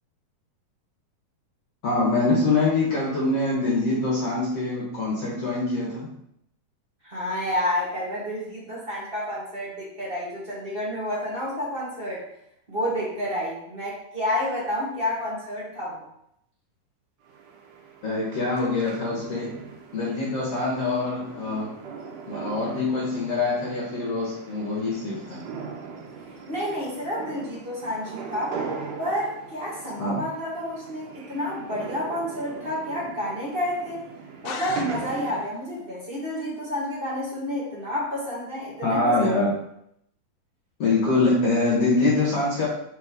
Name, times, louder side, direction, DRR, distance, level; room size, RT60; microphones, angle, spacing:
voice 1, 1.8-6.1 18.0-19.6 19.9-21.8 22.3-25.5 30.0-30.2 38.8-39.5 40.8-42.7, left 3 dB, 55° left, -7 dB, 2.3 m, -24 dB
voice 2, 7.0-12.2 12.7-16.0 26.5-28.6 29.0-34.0 34.4-39.3, left 1 dB, 30° right, -6 dB, 0.9 m, -30 dB
sound 1, 17.3-35.4, right 5 dB, 75° right, 2.2 m, -40 dB
sound 2, 34.4-35.5, left 6 dB, 80° left, 1.9 m, -36 dB
5.2 x 4.5 x 4.8 m, 0.76 s
omnidirectional pair, 3.8 m